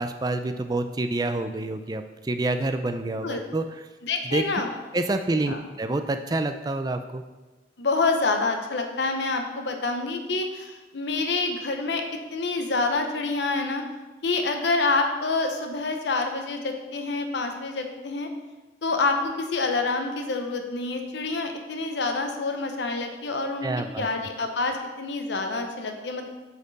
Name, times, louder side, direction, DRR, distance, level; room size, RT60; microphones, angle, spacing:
voice 1, 0.0-3.8 4.2-4.4 4.9-7.2 23.6-24.1, right 2 dB, 20° right, 8 dB, 0.3 m, -27 dB
voice 2, 4.0-4.7 5.5-5.6 7.8-12.0 12.3-13.8 14.2-18.3 18.8-23.7 24.0-26.3, left 3 dB, 80° left, 5 dB, 0.7 m, -27 dB
8.1 x 4.3 x 4.0 m, 1.2 s
head